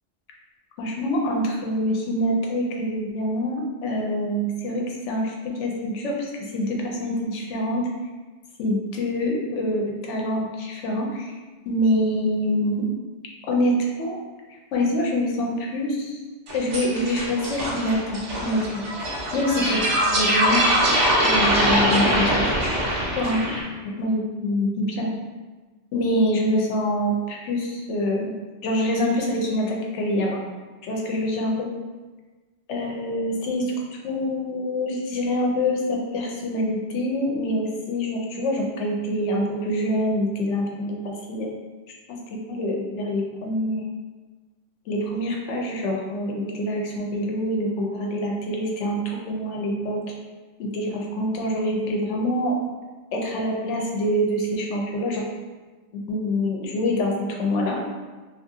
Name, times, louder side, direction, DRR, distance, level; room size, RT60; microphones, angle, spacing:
voice 1, 0.8-5.3 5.6-7.9 8.6-11.3 11.7-12.9 13.5-14.2 14.7-16.2 16.5-18.8 19.3-19.8 20.1-20.6 21.2-22.5 23.2-23.4 23.8-25.1 25.9-28.3 28.6-30.4 30.8-31.7 32.7-33.7 34.0-41.5 42.5-43.9 44.9-50.0 50.6-52.5 53.1-55.2 55.9-57.1 57.4-57.8, left 1 dB, 80° left, 0 dB, 0.9 m, -25 dB
sound 1, 16.5-23.6, equal, 85° right, 1.1 m, -22 dB
2.8 x 2.5 x 2.6 m, 1.3 s
omnidirectional pair, 1.2 m